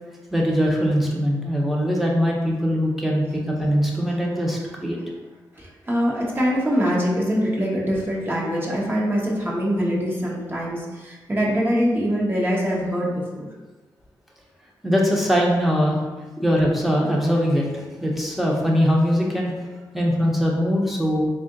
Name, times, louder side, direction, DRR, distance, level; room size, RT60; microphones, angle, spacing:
voice 1, 0.3-5.0 14.8-16.0 16.4-19.7 19.9-21.3, equal, ahead, -2 dB, 1.0 m, -21 dB
voice 2, 5.5-13.5, equal, 25° right, -4 dB, 1.2 m, -23 dB
3.6 x 2.5 x 3.8 m, 1.2 s
cardioid pair, 55°, 8 cm